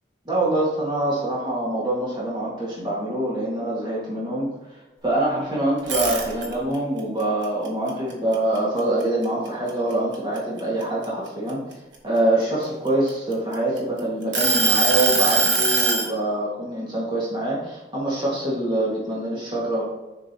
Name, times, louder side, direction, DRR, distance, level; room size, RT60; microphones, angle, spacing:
voice 1, 0.3-4.5 5.0-11.6 12.0-19.8, right 1 dB, 25° right, -6 dB, 1.7 m, -25 dB
sound 1, 5.8-6.7 7.2-9.0 9.4-9.7 10.1-11.9 12.6-13.8 14.3-16.1, right 4 dB, 90° right, 1.1 m, -21 dB
6.9 x 5.4 x 2.8 m, 1.1 s
head